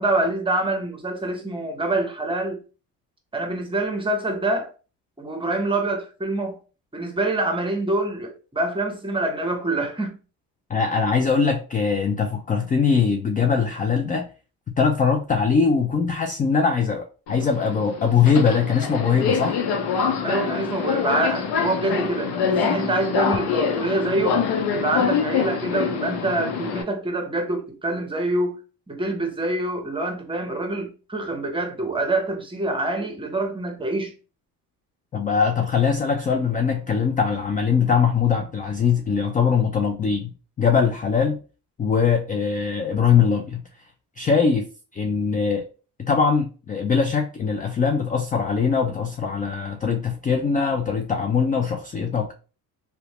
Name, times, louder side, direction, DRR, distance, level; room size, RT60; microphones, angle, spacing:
voice 1, 0.0-2.6 3.3-4.7 5.2-6.6 6.9-10.1 20.2-24.4 24.7-28.6 28.9-34.1, right 2 dB, 15° right, 0.7 m, -25 dB
voice 2, 10.7-14.3 14.8-19.6 35.1-40.3 40.6-41.4 41.8-43.6 44.2-44.7 44.9-45.6 46.0-52.3, left 6 dB, 25° left, 0.3 m, -21 dB
Subway metro underground, 17.3-26.8, left 6 dB, 75° left, 0.6 m, -25 dB
2.8 x 2.1 x 2.8 m
supercardioid pair, 80°, 39 cm